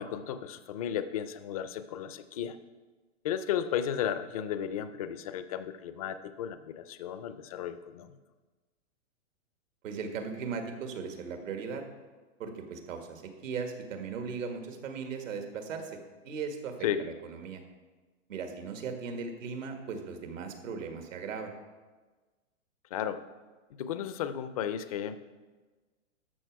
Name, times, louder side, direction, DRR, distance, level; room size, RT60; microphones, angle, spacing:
voice 1, 0.0-2.6 3.2-8.2 16.8-17.1 22.9-23.2 23.7-25.2, left 9 dB, 30° left, 11 dB, 0.4 m, -34 dB
voice 2, 9.8-11.8 12.4-15.9 16.3-17.6 18.3-21.5, right 5 dB, 85° right, 5 dB, 1.8 m, -38 dB
12.5 x 6.2 x 4.6 m, 1.3 s
hypercardioid pair, 155°, 38 cm